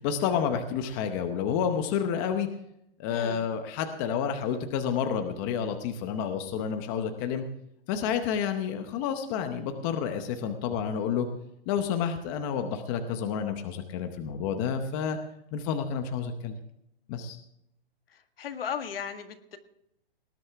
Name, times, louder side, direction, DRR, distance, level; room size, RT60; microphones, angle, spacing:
voice 1, 0.0-2.5 3.0-7.4 7.9-11.3 11.7-15.2 15.5-16.6 17.1-17.4, left 7 dB, 20° left, 7 dB, 0.8 m, -29 dB
voice 2, 3.1-3.4 18.1-19.6, left 7 dB, 70° left, 7 dB, 1.9 m, -36 dB
19.0 x 11.0 x 3.5 m, 0.78 s
hypercardioid pair, 165°, 30 cm